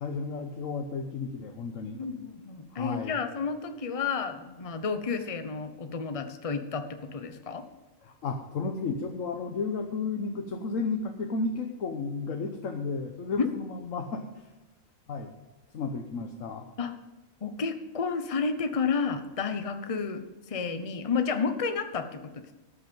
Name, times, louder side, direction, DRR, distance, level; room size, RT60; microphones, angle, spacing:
voice 1, 0.0-2.0 2.7-3.2 8.0-14.5 15.1-15.3 15.7-16.7, left 4 dB, 75° left, 4 dB, 1.4 m, -33 dB
voice 2, 2.0-7.6 13.4-13.5 16.8-16.9 17.4-20.2 20.5-22.5, left 5 dB, 30° left, 8 dB, 0.9 m, -31 dB
13.0 x 8.9 x 5.3 m, 1.1 s
omnidirectional pair, 1.4 m